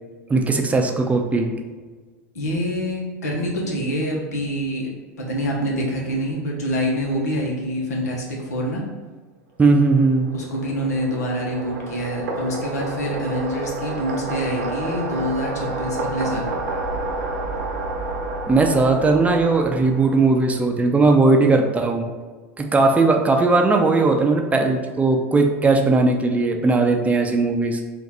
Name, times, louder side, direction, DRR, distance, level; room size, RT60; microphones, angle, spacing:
voice 1, 0.3-1.5 9.6-10.3 18.5-22.1 22.6-27.8, right 3 dB, 15° right, 3 dB, 0.5 m, -18 dB
voice 2, 2.3-4.9 5.2-8.8 10.3-16.5, equal, 90° left, -2 dB, 1.0 m, -26 dB
sound 1, 9.9-20.6, right 2 dB, 85° right, 0.8 m, -30 dB
3.9 x 2.5 x 4.1 m, 1.4 s
hypercardioid pair, 95°, 9 cm